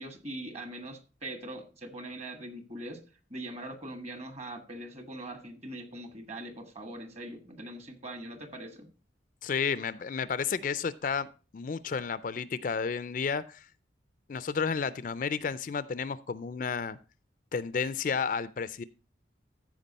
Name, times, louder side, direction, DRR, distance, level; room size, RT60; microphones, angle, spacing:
voice 1, 0.0-3.0 3.3-8.9, right 1 dB, 35° right, 1.4 m, -42 dB
voice 2, 9.4-11.3 11.5-13.6 14.3-17.0 17.5-18.8, left 6 dB, 45° left, 0.4 m, -32 dB
14.5 x 4.9 x 4.0 m
head